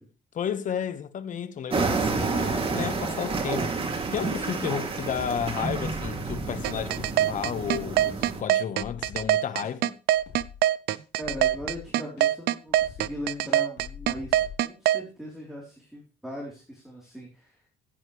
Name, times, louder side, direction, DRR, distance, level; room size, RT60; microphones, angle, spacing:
voice 1, 0.3-3.7 4.0-9.9, left 8 dB, 50° left, 1.3 m, -32 dB
sound 1, 1.7-8.4, right 4 dB, 35° right, 2.8 m, -29 dB
sound 2, 6.6-15.0, right 13 dB, 70° right, 0.6 m, -23 dB
sound 3, 8.8-9.3 9.6-9.7 10.1-10.6 10.9-11.9 12.2-12.3 12.7-14.6, left 8 dB, 75° left, 3.6 m, -44 dB
voice 2, 11.2-17.6, equal, ahead, 3.8 m, -39 dB
15.5 x 9.1 x 3.3 m
cardioid pair, 110°, 17 cm